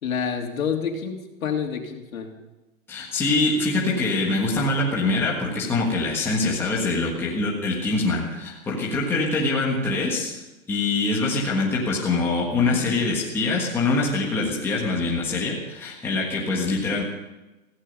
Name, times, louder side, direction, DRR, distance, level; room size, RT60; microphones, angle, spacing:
voice 1, 0.0-2.3, left 7 dB, 70° left, 3 dB, 3.1 m, -28 dB
voice 2, 2.9-10.4 10.7-17.0, left 3 dB, 5° left, -4 dB, 1.6 m, -24 dB
16.5 x 16.0 x 5.4 m, 1.1 s
hypercardioid pair, 175°, 43 cm